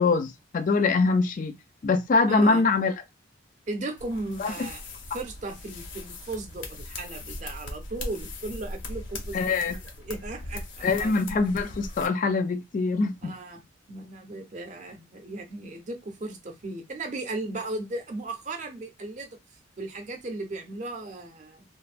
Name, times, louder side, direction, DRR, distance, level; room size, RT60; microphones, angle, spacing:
voice 1, 0.0-1.5 1.8-2.9 4.4-4.5 9.3-9.7 10.8-13.3, left 4 dB, 40° left, 0.3 m, -23 dB
voice 2, 2.3-2.6 3.7-4.8 5.1-9.6 10.0-11.1 13.2-19.4 19.8-21.6, right 2 dB, 40° right, 0.6 m, -36 dB
sound 1, 4.0-12.1, left 2 dB, 75° left, 0.6 m, -39 dB
3.0 x 2.0 x 2.5 m
head